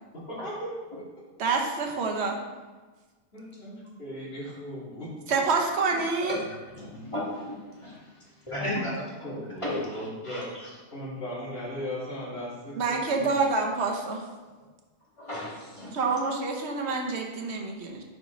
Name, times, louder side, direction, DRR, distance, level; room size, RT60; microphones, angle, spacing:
voice 1, 0.3-0.7 3.3-5.1 6.8-7.0 9.2-10.5 10.9-13.3, equal, 50° left, -10 dB, 2.7 m, -37 dB
voice 2, 1.4-2.4 5.3-6.4 12.8-14.2 15.9-18.0, right 4 dB, 55° right, 2 dB, 1.2 m, -27 dB
voice 3, 5.9-8.1 8.4-10.7 15.2-16.1, left 1 dB, 25° left, -7 dB, 2.0 m, -35 dB
7.7 x 5.1 x 3.9 m, 1.3 s
omnidirectional pair, 1.4 m